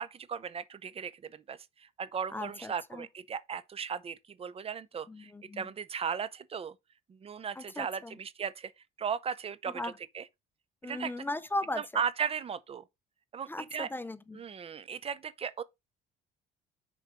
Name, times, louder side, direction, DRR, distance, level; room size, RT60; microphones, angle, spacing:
voice 1, 0.0-6.7 7.2-8.7 9.0-10.3 10.8-11.1 11.9-12.8 13.3-13.9 14.3-15.6, right 7 dB, 35° right, 0.7 m, -36 dB
voice 2, 2.3-3.1 5.1-5.6 7.6-8.2 9.7-10.0 10.8-12.0 13.5-14.4, left 2 dB, 10° left, 0.6 m, -37 dB
6.7 x 4.9 x 4.9 m
cardioid pair, 110°, 17 cm